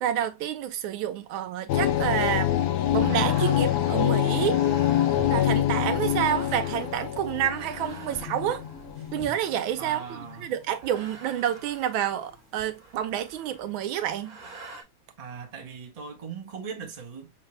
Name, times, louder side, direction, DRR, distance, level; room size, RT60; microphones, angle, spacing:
voice 1, 0.0-2.5 2.9-4.6 5.3-8.6 9.1-10.0 10.4-14.4, right 11 dB, 80° right, 1.4 m, -28 dB
sound 1, 1.7-9.1, left 12 dB, 85° left, 0.8 m, -25 dB
sound 2, 2.9-14.8, right 3 dB, 50° right, 1.6 m, -48 dB
sound 3, 7.3-11.8 12.3-12.7 13.3-13.4, left 2 dB, ahead, 1.0 m, -45 dB
voice 2, 9.8-10.5 15.2-17.3, right 6 dB, 30° right, 0.7 m, -39 dB
6.0 x 2.2 x 3.0 m
omnidirectional pair, 2.2 m